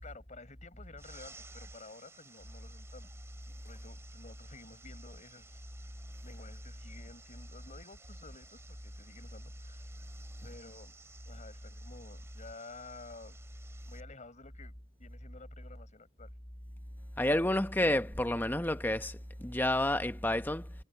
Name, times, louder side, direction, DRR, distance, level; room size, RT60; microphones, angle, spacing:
voice 1, 0.0-3.1 3.5-5.6 6.2-9.9 10.4-10.9 11.3-13.4 13.9-16.3, left 3 dB, 40° left, 4.7 m, -52 dB
sound 1, 1.0-14.0, right 3 dB, 15° right, 3.4 m, -57 dB
voice 2, 17.2-20.7, left 1 dB, 10° left, 1.0 m, -30 dB
head